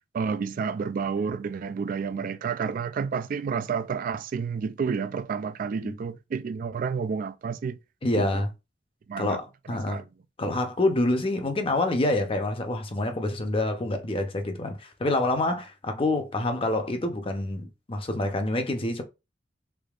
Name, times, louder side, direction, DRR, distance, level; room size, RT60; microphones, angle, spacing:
voice 1, 0.1-7.8 8.1-8.4 9.1-9.4 9.7-10.0, right 6 dB, 50° right, 0.3 m, -30 dB
voice 2, 8.0-8.5 9.2-10.0 10.4-19.0, left 2 dB, 30° left, 0.7 m, -27 dB
3.7 x 3.5 x 2.4 m
head